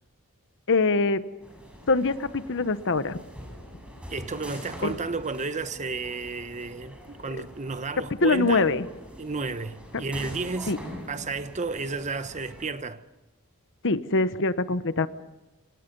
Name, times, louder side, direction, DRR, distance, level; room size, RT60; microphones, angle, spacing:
voice 1, 0.7-1.2 1.9-3.2 4.8-4.9 8.2-8.8 10.7-10.8 13.8-15.1, left 3 dB, 60° left, 1.1 m, -23 dB
sound 1, 1.4-12.7, equal, 5° right, 6.8 m, -44 dB
voice 2, 4.1-8.7 9.2-10.7 11.1-13.0, right 4 dB, 35° right, 1.1 m, -32 dB
27.5 x 26.5 x 5.4 m
head